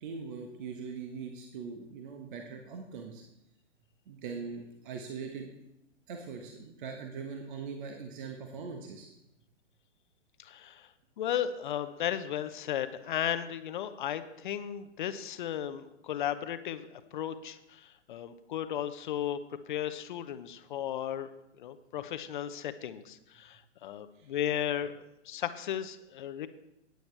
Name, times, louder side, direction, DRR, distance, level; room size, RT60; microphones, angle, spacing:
voice 1, 0.0-3.2 4.1-5.5 6.1-9.1 24.1-24.3, right 5 dB, 45° right, 3 dB, 1.4 m, -41 dB
voice 2, 10.4-10.9 11.2-19.4 19.7-21.3 21.6-26.5, left 10 dB, 40° left, 12 dB, 0.8 m, -35 dB
15.5 x 9.3 x 3.3 m, 0.87 s
figure-of-eight pair, 125°, 36 cm